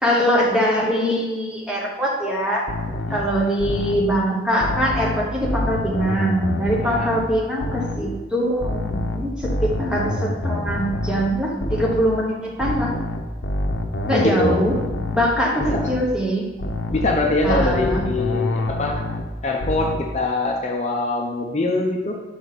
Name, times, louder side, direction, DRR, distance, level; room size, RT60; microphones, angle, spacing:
voice 1, 0.0-2.6 3.1-12.9 14.0-14.7 15.1-15.6 15.9-16.5 17.4-18.0, equal, 5° right, -3 dB, 1.1 m, -22 dB
sound 1, 2.7-4.1 4.6-7.3 7.6-8.1 8.6-12.1 12.6-15.3 15.6-16.1 16.6-19.3 19.6-20.1, left 1 dB, 90° left, 0.7 m, -27 dB
voice 2, 6.8-7.1 14.1-14.5 15.7-15.9 16.9-19.0 19.4-22.1, left 2 dB, 40° left, 1 dB, 0.6 m, -23 dB
6.2 x 5.0 x 4.1 m, 1.2 s
head